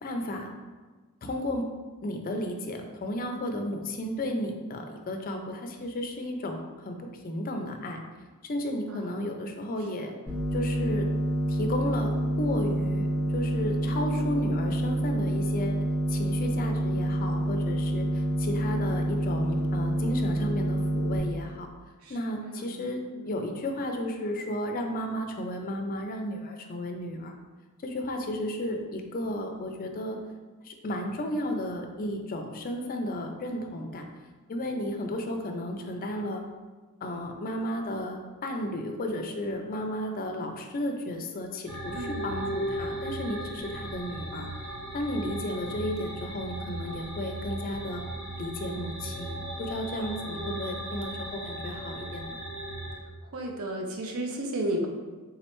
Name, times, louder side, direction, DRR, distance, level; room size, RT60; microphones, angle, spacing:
voice 1, 0.0-0.5 1.2-1.6 2.0-8.0 8.4-10.1 10.5-11.1 11.5-12.1 12.4-13.1 13.3-21.7 22.1-27.3 27.8-30.2 30.6-34.1 34.5-36.4 37.0-44.5 44.9-48.0 48.4-52.4, left 1 dB, 40° left, 4 dB, 0.4 m, -33 dB
voice 2, 8.9-9.3 10.0-10.1 22.0-22.1 22.4-22.8 23.1-23.4 41.9-42.4 50.3-50.8 53.3-54.9, right 1 dB, 65° right, 1 dB, 0.6 m, -34 dB
sound 1, 10.3-21.2, right 1 dB, 20° right, 1.3 m, -27 dB
sound 2, 41.7-52.9, right 1 dB, ahead, 1.5 m, -36 dB
3.7 x 3.1 x 3.0 m, 1.3 s
head